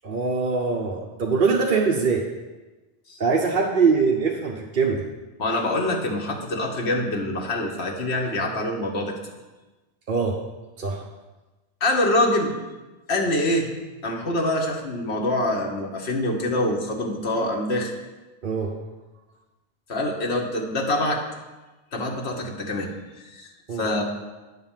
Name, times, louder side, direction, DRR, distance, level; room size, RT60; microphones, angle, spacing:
voice 1, 0.0-2.2 3.2-5.0 10.1-10.4 10.8-11.0 18.4-18.7 23.7-23.9, right 5 dB, 55° right, -1 dB, 0.9 m, -22 dB
voice 2, 5.4-9.1 11.8-12.5 13.1-13.7 14.0-17.9 19.9-21.2 21.9-24.0, left 1 dB, 85° left, 0 dB, 1.4 m, -25 dB
9.5 x 4.0 x 7.2 m, 1.2 s
omnidirectional pair, 1.1 m